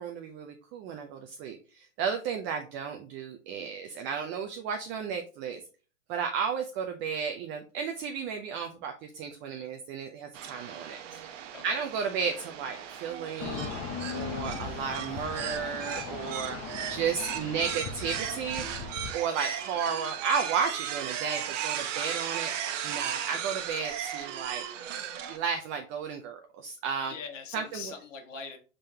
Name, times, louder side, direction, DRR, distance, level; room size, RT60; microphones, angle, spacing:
voice 1, 0.0-5.6 6.1-11.3 11.6-13.7 14.1-16.6 16.9-18.6 19.1-22.5 22.8-24.7 25.3-27.1 27.5-27.9, right 6 dB, 30° right, 5 dB, 0.5 m, -33 dB
sound 1, 10.3-25.4, right 9 dB, 75° right, 0.8 m, -36 dB
sound 2, 13.4-19.1, left 6 dB, 35° left, 0.7 m, -38 dB
voice 2, 17.1-17.9 27.0-28.6, left 5 dB, 75° left, 4 dB, 1.5 m, -43 dB
5.1 x 3.7 x 2.8 m, 0.37 s
supercardioid pair, 135°, 38 cm